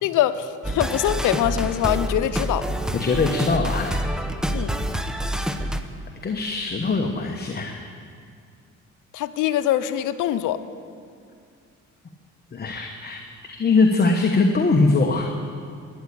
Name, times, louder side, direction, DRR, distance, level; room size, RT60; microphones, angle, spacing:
voice 1, 0.0-2.7 4.5-4.8 9.1-10.6, left 12 dB, 90° left, 12 dB, 0.7 m, -23 dB
sound 1, 0.6-5.8, equal, ahead, 0.8 m, -27 dB
voice 2, 2.9-4.0 6.2-7.8 12.5-15.4, left 3 dB, 30° left, 3 dB, 1.1 m, -22 dB
12.5 x 9.8 x 8.4 m, 2.2 s
cardioid pair, 90°, 30 cm